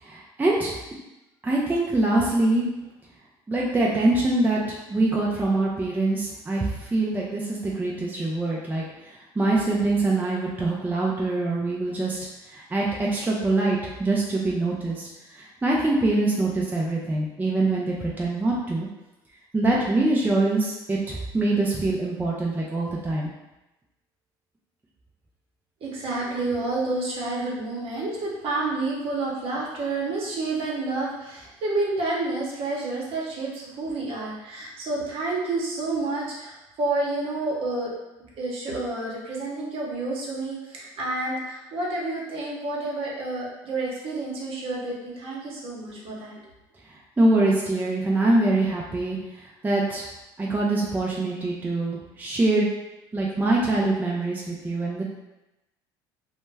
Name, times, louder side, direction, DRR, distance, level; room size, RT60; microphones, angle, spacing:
voice 1, 0.0-0.8 1.4-2.7 3.5-18.9 19.5-23.3 47.2-49.2 49.6-50.0 50.4-52.7 53.1-55.0, right 2 dB, 15° right, -4 dB, 0.5 m, -24 dB
voice 2, 25.8-37.9 38.4-46.4, right 2 dB, 55° right, -4 dB, 0.9 m, -29 dB
2.1 x 2.1 x 3.3 m, 0.99 s
hypercardioid pair, 75°, 12 cm